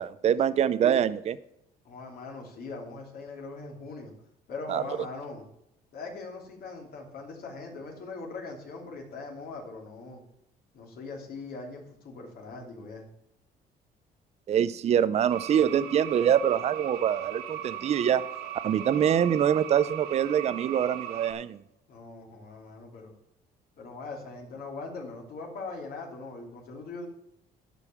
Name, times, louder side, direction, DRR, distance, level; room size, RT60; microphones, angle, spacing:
voice 1, 0.0-1.4 4.7-4.8 14.5-18.2 18.6-21.6, right 9 dB, 40° right, 15 dB, 0.5 m, -24 dB
voice 2, 1.8-4.1 4.5-5.5 5.9-10.2 10.7-13.1 21.9-23.1 23.8-27.1, left 3 dB, 65° left, 1 dB, 2.8 m, -41 dB
sound 1, 15.3-21.3, right 11 dB, 80° right, 1.4 m, -38 dB
11.0 x 5.4 x 6.9 m, 0.79 s
cardioid pair, 110°, 17 cm